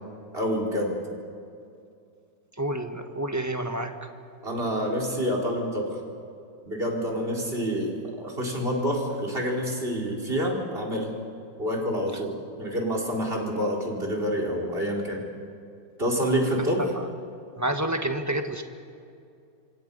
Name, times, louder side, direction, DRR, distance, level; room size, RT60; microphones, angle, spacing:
voice 1, 0.3-1.0 4.4-6.0 6.7-11.2 11.6-15.2 16.0-16.9, equal, 30° right, 1 dB, 4.2 m, -27 dB
voice 2, 2.6-3.9 16.9-17.0 17.6-18.6, right 1 dB, 10° right, 5 dB, 1.3 m, -28 dB
26.5 x 26.0 x 5.4 m, 2.5 s
omnidirectional pair, 1.9 m